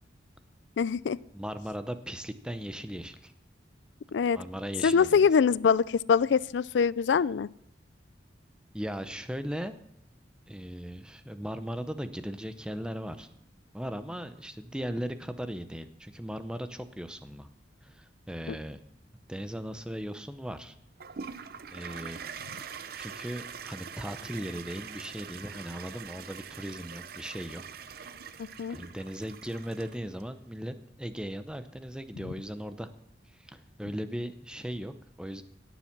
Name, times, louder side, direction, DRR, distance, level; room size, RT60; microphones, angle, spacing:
voice 1, 0.8-1.2 4.1-4.4 4.8-7.5 18.5-18.6 28.6-28.8, left 6 dB, 75° left, 21 dB, 0.4 m, -24 dB
voice 2, 1.3-3.3 4.3-5.3 8.7-9.7 10.5-13.3 13.7-17.5 17.8-18.8 19.3-20.8 21.7-22.2 23.0-27.6 28.0-28.2 28.7-32.9 33.3-35.4, equal, 5° right, 10 dB, 0.7 m, -38 dB
Toilet flush, 21.0-30.2, right 7 dB, 55° right, 0.6 m, -43 dB
17.0 x 7.2 x 6.0 m, 0.79 s
head